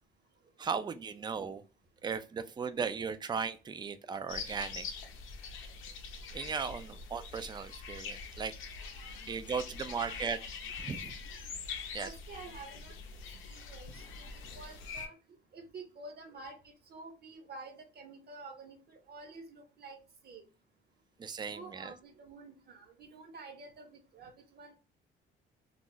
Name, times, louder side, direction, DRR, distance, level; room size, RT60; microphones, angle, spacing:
voice 1, 0.6-1.6 2.0-4.8 6.3-8.5 9.3-10.4 10.8-11.1 11.9-12.1 21.2-21.9, right 6 dB, 20° right, 0.3 m, -37 dB
sound 1, 4.3-15.1, left 5 dB, 85° left, 0.6 m, -44 dB
voice 2, 8.6-9.2 9.7-10.5 12.0-12.9 13.4-14.3 14.5-15.1 15.5-16.5 16.9-20.0 20.2-20.4 21.5-24.7, right 3 dB, 55° right, 1.0 m, -49 dB
2.3 x 2.0 x 3.7 m
cardioid pair, 90°, 20 cm